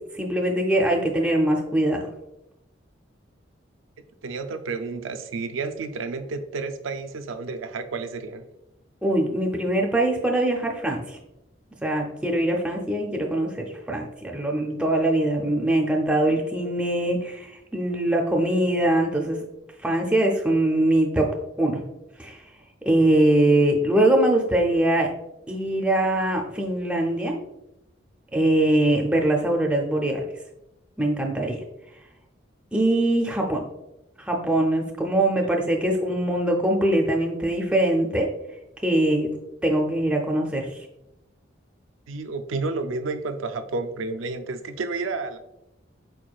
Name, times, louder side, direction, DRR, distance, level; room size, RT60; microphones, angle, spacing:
voice 1, 0.1-2.1 9.0-11.2 11.8-19.4 19.8-21.3 21.6-21.8 22.2-22.4 22.8-25.1 25.5-27.4 28.3-30.3 31.0-31.6 32.7-33.6 34.2-38.3 38.8-39.3 39.6-40.9, right 1 dB, 5° right, 0 dB, 0.4 m, -22 dB
voice 2, 4.2-8.5 42.1-45.4, right 3 dB, 90° right, 8 dB, 0.4 m, -31 dB
4.6 x 4.5 x 2.3 m, 0.90 s
head